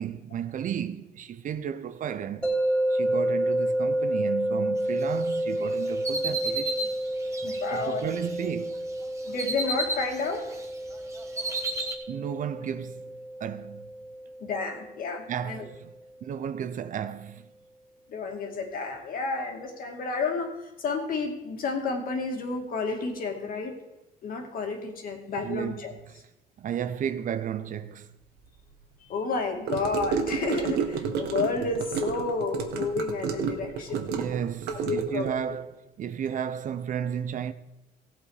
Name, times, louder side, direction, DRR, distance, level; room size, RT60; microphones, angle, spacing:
voice 1, 0.0-2.5 2.9-6.9 7.7-8.8 12.1-13.1 13.4-13.9 15.3-15.9 16.2-17.5 25.4-26.0 26.6-28.1 34.0-37.5, right 8 dB, 50° right, 0.7 m, -33 dB
sound 1, 2.4-15.5, right 1 dB, 5° left, 2.7 m, -30 dB
sound 2, 5.2-8.5 8.9-10.7 10.9-11.9, right 2 dB, 15° right, 1.5 m, -33 dB
voice 2, 7.4-8.0 9.3-10.5 14.4-15.7 18.1-23.7 24.2-25.9 29.0-34.2 34.9-35.3, left 4 dB, 55° left, 2.5 m, -31 dB
Gurgling / Car passing by / Sink (filling or washing), 29.7-35.3, right 6 dB, 85° right, 1.5 m, -31 dB
16.0 x 8.5 x 4.9 m
cardioid pair, 110°, 17 cm